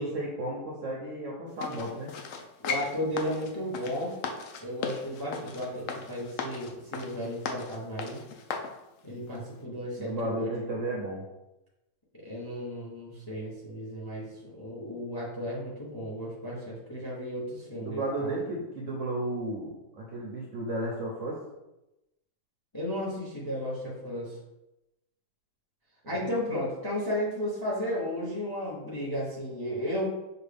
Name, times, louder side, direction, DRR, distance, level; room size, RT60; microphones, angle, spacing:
voice 1, 0.0-2.1 10.0-11.2 17.7-21.4 26.1-26.3, right 1 dB, 60° right, -3 dB, 0.8 m, -33 dB
sound 1, 1.6-8.7 9.3-9.4, left 5 dB, 85° left, 0.7 m, -37 dB
voice 2, 2.6-4.2 4.6-8.2 9.0-10.5 12.1-18.3 22.7-24.4 26.1-30.1, equal, 20° left, -4 dB, 0.6 m, -34 dB
5.8 x 2.4 x 3.4 m, 0.95 s
omnidirectional pair, 1.9 m